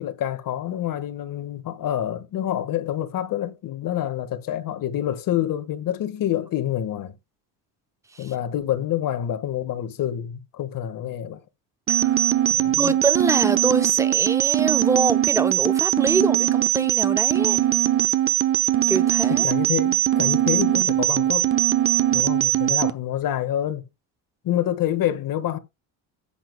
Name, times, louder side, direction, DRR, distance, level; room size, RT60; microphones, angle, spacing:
voice 1, 0.0-7.1 8.2-11.4 12.5-13.0 19.3-21.5 22.1-23.9 24.4-25.6, left 11 dB, 55° left, 1.6 m, -27 dB
voice 2, 11.9-12.2 12.8-17.6 18.9-19.5, right 4 dB, 5° right, 0.7 m, -25 dB
sound 1, 11.9-22.9, right 12 dB, 30° right, 1.0 m, -21 dB
16.0 x 8.2 x 2.2 m
cardioid pair, 140°, 41 cm